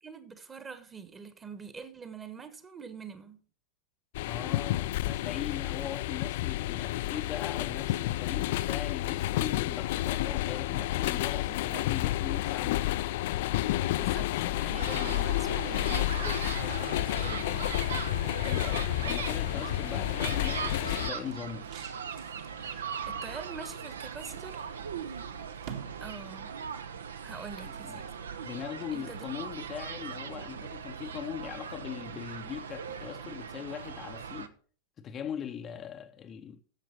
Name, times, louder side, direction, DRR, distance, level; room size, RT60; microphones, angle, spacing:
voice 1, 0.0-3.4 11.4-11.8 13.9-17.8 19.9-20.1 22.6-24.7 26.0-26.6 27.2-28.1 28.9-29.3, right 5 dB, 20° right, 1.3 m, -45 dB
sound 1, 4.1-21.1, left 15 dB, 50° left, 0.4 m, -30 dB
voice 2, 4.3-12.9 18.4-21.7 27.8-28.0 28.4-34.5 35.0-36.6, left 8 dB, 25° left, 0.7 m, -40 dB
sound 2, 14.7-34.5, right 7 dB, 65° right, 0.7 m, -39 dB
sound 3, 16.3-26.6, right 8 dB, 50° right, 1.9 m, -51 dB
10.5 x 7.2 x 5.6 m
figure-of-eight pair, 90°, 0 cm